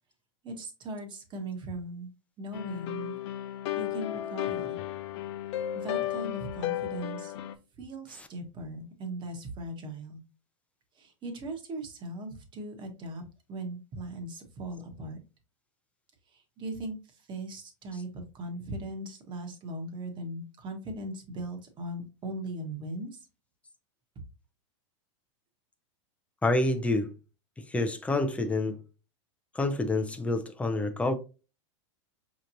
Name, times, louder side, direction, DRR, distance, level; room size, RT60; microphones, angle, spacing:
voice 1, 0.4-2.1 2.4-3.2 3.8-4.8 5.5-7.3 7.8-10.2 10.9-13.2 13.5-15.2 16.3-23.3, right 1 dB, 30° right, 1.1 m, -39 dB
sound 1, 2.5-7.6, left 13 dB, 60° left, 0.5 m, -34 dB
voice 2, 26.4-27.1 27.6-28.8 29.5-31.1, left 2 dB, 10° left, 0.5 m, -28 dB
4.9 x 3.0 x 2.6 m
hypercardioid pair, 120°, 16 cm